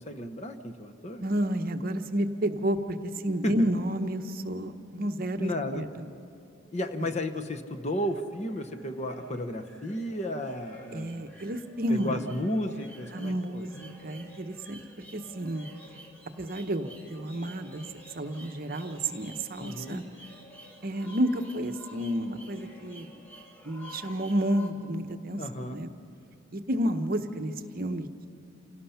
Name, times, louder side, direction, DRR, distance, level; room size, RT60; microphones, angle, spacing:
voice 1, 0.0-1.2 3.4-3.5 5.4-5.8 6.7-11.3 11.9-13.7 19.6-20.0 25.4-25.8, left 1 dB, 35° left, 7 dB, 0.9 m, -33 dB
voice 2, 1.2-6.1 10.9-12.3 13.1-14.8 15.1-15.7 16.4-20.0 20.8-23.1 23.6-25.9 26.5-28.3, right 1 dB, 45° right, 7 dB, 0.9 m, -31 dB
sound 1, 7.7-24.7, equal, 10° left, 1.7 m, -51 dB
28.0 x 17.0 x 5.7 m, 2.5 s
head